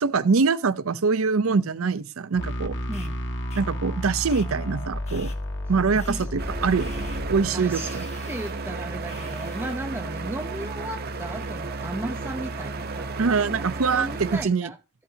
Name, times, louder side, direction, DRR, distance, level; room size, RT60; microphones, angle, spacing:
voice 1, 0.0-2.8 3.6-5.3 5.7-8.1 13.2-14.7, right 4 dB, 80° right, 0.6 m, -24 dB
sound 1, 2.4-7.4, equal, 60° left, 1.6 m, -31 dB
sound 2, 2.9-3.1 3.5-3.6 4.3-4.5 5.1-5.4 5.9-6.3 6.8-7.2 7.7-8.5 9.1-9.8, left 4 dB, 30° left, 1.4 m, -45 dB
voice 2, 2.9-3.2 6.1-6.3 7.5-13.1 13.8-14.8, right 1 dB, 10° right, 0.5 m, -35 dB
sound 3, 6.4-14.4, right 3 dB, 50° right, 0.8 m, -33 dB
13.0 x 8.5 x 2.7 m
head